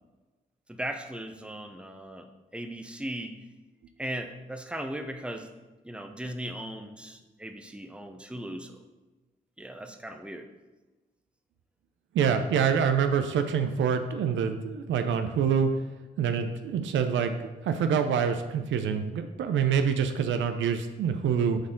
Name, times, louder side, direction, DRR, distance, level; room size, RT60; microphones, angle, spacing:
voice 1, 0.7-2.3 2.5-3.3 4.0-5.5 5.8-8.7 9.6-10.5, right 1 dB, 5° right, 6 dB, 0.8 m, -37 dB
voice 2, 12.1-15.7 16.2-21.6, right 7 dB, 75° right, 8 dB, 0.5 m, -26 dB
7.9 x 4.2 x 3.8 m, 1.2 s
supercardioid pair, 45°, 20 cm